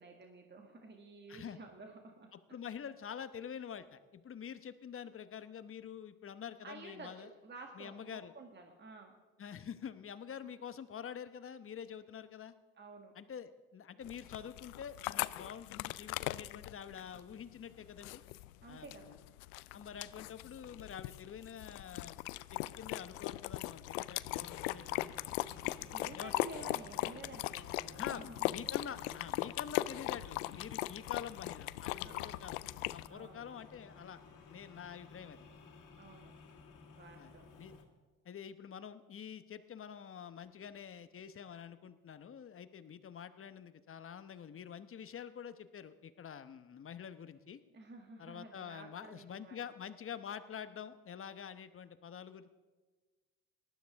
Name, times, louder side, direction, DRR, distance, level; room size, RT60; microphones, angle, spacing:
voice 1, 0.0-2.3 6.6-9.2 12.8-13.1 18.6-19.2 25.6-28.7 32.0-32.4 33.1-33.4 36.0-36.3 37.0-37.5 47.7-49.6, right 3 dB, 25° right, 3 dB, 1.8 m, -52 dB
voice 2, 2.3-7.3 7.8-8.3 9.4-12.5 13.1-18.2 18.7-19.2 19.7-22.1 22.5-25.1 26.2-26.3 27.9-32.6 32.9-34.2 34.5-35.4 37.2-37.3 37.6-37.8 38.2-47.6 48.2-52.5, left 8 dB, 30° left, 12 dB, 1.0 m, -47 dB
sound 1, 14.0-33.1, left 18 dB, 80° left, 0.5 m, -39 dB
sound 2, 24.2-37.8, left 4 dB, 45° left, 2.7 m, -56 dB
18.5 x 12.5 x 3.5 m, 1.3 s
hypercardioid pair, 70°, 41 cm